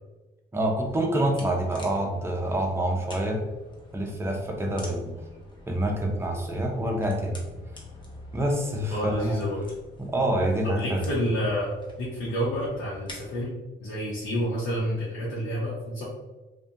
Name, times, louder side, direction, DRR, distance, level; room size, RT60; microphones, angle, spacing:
voice 1, 0.5-3.4 3.9-5.1 5.7-7.4 8.3-9.4 10.0-11.0, right 1 dB, 10° right, 1 dB, 0.5 m, -27 dB
sound 1, 0.8-13.5, left 1 dB, 25° left, 0.7 m, -46 dB
voice 2, 8.9-9.6 10.6-11.7 12.0-16.0, equal, 75° left, -7 dB, 0.8 m, -29 dB
2.4 x 2.2 x 2.7 m, 1.1 s
cardioid pair, 90°, 20 cm